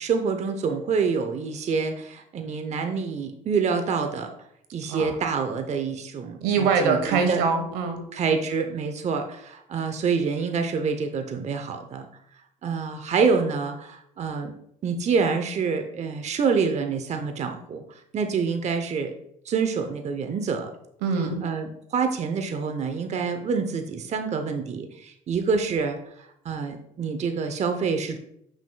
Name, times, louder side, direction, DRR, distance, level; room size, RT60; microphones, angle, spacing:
voice 1, 0.0-4.3 4.7-7.4 8.1-12.1 12.6-14.5 14.8-19.1 19.4-20.7 21.4-28.2, right 5 dB, 45° right, 6 dB, 0.8 m, -27 dB
voice 2, 6.4-8.0 21.0-21.5, right 5 dB, 85° right, 6 dB, 1.2 m, -23 dB
7.5 x 6.2 x 2.3 m, 0.71 s
supercardioid pair, 85°, 16 cm